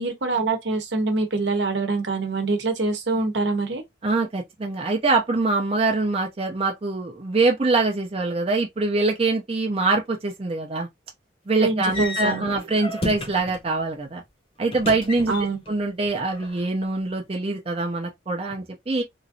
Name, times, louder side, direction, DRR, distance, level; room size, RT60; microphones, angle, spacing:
voice 1, 0.0-3.8 11.6-12.5 15.3-15.6, right 3 dB, 65° right, 0.8 m, -25 dB
voice 2, 4.0-10.9 11.5-14.2 14.6-15.3 15.7-19.0, right 3 dB, 30° right, 0.5 m, -24 dB
sound 1, 11.9-13.7 14.7-15.7 16.0-16.8, left 2 dB, 30° left, 0.8 m, -32 dB
3.0 x 2.6 x 2.7 m
head